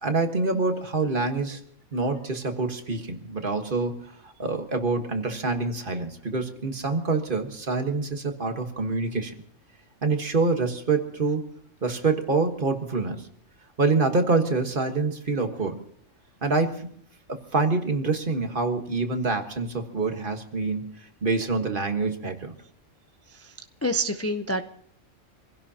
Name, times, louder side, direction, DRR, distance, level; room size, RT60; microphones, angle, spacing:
voice 1, 0.0-1.6 1.9-9.3 10.0-11.4 11.8-13.3 13.8-15.8 16.4-16.9 17.3-22.5, right 3 dB, 45° right, 6 dB, 1.6 m, -26 dB
voice 2, 23.8-24.6, right 1 dB, 20° left, 7 dB, 0.4 m, -27 dB
26.5 x 16.5 x 2.8 m, 0.64 s
omnidirectional pair, 1.3 m